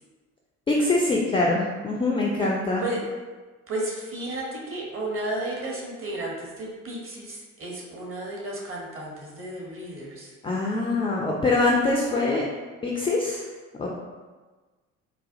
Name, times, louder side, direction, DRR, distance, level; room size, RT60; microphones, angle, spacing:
voice 1, 0.7-2.8 10.4-12.4 12.8-13.4 13.8-13.9, left 2 dB, 15° left, -3 dB, 0.3 m, -23 dB
voice 2, 3.7-10.3, right 1 dB, 30° right, -2 dB, 1.0 m, -33 dB
4.0 x 2.3 x 2.6 m, 1.3 s
figure-of-eight pair, 55°, 41 cm